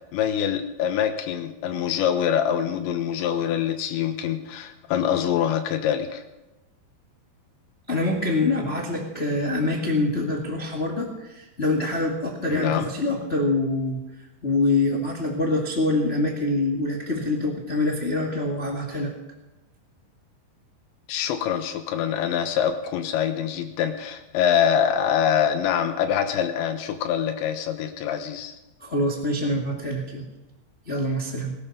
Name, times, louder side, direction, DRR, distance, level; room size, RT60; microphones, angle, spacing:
voice 1, 0.1-6.2 12.5-12.9 21.1-28.6, left 9 dB, 90° left, 6 dB, 3.4 m, -24 dB
voice 2, 7.9-14.0 14.4-19.1 28.8-30.2 30.8-31.5, left 2 dB, 35° left, -1 dB, 1.0 m, -25 dB
20.0 x 12.5 x 5.5 m, 1.0 s
omnidirectional pair, 5.1 m